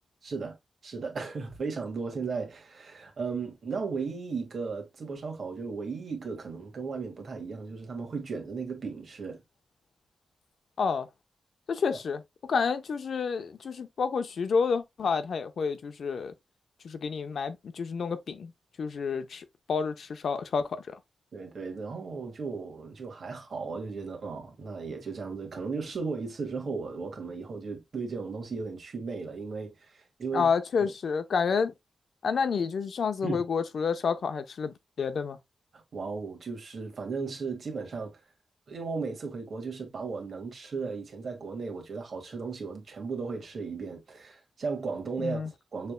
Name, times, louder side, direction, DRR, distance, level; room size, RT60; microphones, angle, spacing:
voice 1, 0.2-0.6 0.8-9.4 21.3-30.5 30.8-30.9 33.2-33.4 35.7-38.1 38.7-45.9, right 4 dB, 60° right, 1.8 m, -36 dB
voice 2, 10.8-11.1 11.7-12.2 12.5-16.3 16.8-18.5 18.8-21.0 30.3-31.7 32.2-35.4 45.2-45.5, left 5 dB, 70° left, 0.7 m, -29 dB
6.7 x 3.4 x 2.2 m
wide cardioid pair, 165°, 0 cm